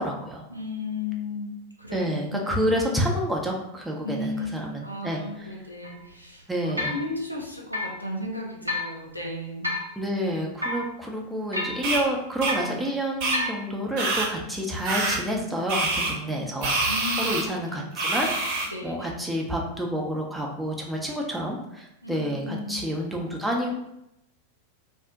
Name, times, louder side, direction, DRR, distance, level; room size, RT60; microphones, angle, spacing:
voice 1, 0.0-0.4 1.9-5.6 6.5-7.0 10.0-16.8 17.1-23.8, equal, 5° right, -1 dB, 0.5 m, -29 dB
voice 2, 0.5-1.5 1.8-2.0 2.3-2.6 4.0-9.7 16.2-16.4 16.9-17.3 17.7-17.8 18.7-19.1 22.0-22.8, left 2 dB, 85° left, -1 dB, 0.5 m, -34 dB
sound 1, 5.1-5.2 5.8-5.9 6.8-7.0 7.7-8.0 8.7-8.9 9.6-9.9 10.6-10.9 11.5-11.9 12.5-12.7 13.3-13.6, left 2 dB, 85° right, 0.5 m, -29 dB
sound 2, 11.8-12.0 12.4-12.5 13.2-13.4 14.0-14.3 14.8-15.2 15.7-16.1 16.6-17.4 18.0-18.7, right 3 dB, 45° right, 0.7 m, -25 dB
2.5 x 2.1 x 3.6 m, 0.84 s
figure-of-eight pair, 90°, 0 cm